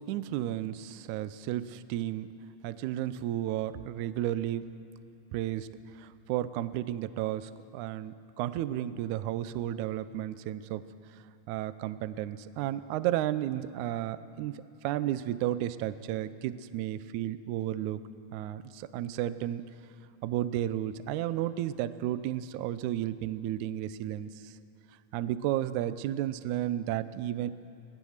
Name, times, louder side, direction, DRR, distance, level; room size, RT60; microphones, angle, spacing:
voice 1, 0.1-2.3 2.6-4.7 5.3-5.7 6.0-10.8 11.5-18.0 18.3-19.6 20.2-24.5 25.1-27.5, right 12 dB, 85° right, 14 dB, 1.7 m, -33 dB
25.0 x 18.5 x 6.5 m, 2.5 s
omnidirectional pair, 4.2 m